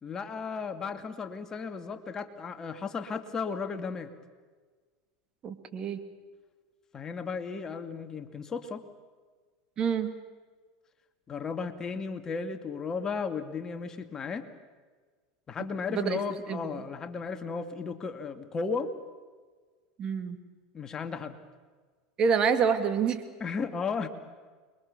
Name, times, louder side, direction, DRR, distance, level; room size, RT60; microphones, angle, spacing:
voice 1, 0.0-4.1 6.9-8.8 11.3-14.5 15.5-18.9 20.7-21.4 23.4-24.1, left 5 dB, 25° left, 7 dB, 2.3 m, -34 dB
voice 2, 5.4-6.0 9.8-10.2 15.9-16.2 16.5-16.8 20.0-20.4 22.2-23.2, right 6 dB, 40° right, 8 dB, 2.7 m, -27 dB
28.5 x 23.0 x 7.1 m, 1.4 s
hypercardioid pair, 90°, 2 cm